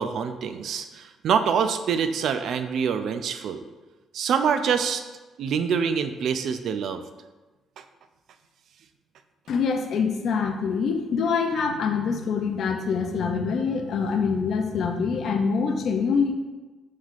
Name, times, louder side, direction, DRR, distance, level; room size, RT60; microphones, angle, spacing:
voice 1, 0.0-3.6 4.1-5.0 5.4-7.0, right 6 dB, 70° right, 8 dB, 0.3 m, -25 dB
voice 2, 9.5-16.4, left 5 dB, 65° left, 4 dB, 0.4 m, -25 dB
5.5 x 3.2 x 2.4 m, 1.2 s
cardioid pair, 90°, 0 cm